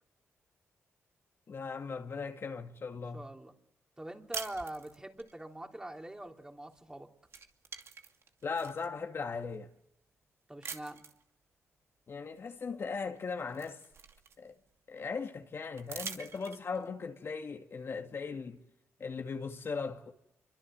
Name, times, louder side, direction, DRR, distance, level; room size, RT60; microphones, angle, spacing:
voice 1, 1.5-3.3 8.4-9.7 12.1-13.8 14.4-14.5 14.9-18.6 19.0-20.1, left 5 dB, 50° left, 2.3 m, -38 dB
voice 2, 3.1-3.5 4.0-7.1 10.5-11.0, right 1 dB, 15° right, 3.6 m, -43 dB
sound 1, 4.3-5.3 6.7-6.9 7.2-8.9 9.5-9.6 10.6-11.2 12.7-12.8 13.2-14.7 15.8-16.9, right 5 dB, 55° right, 2.5 m, -45 dB
27.5 x 24.5 x 7.9 m
cardioid pair, 80°, 5 cm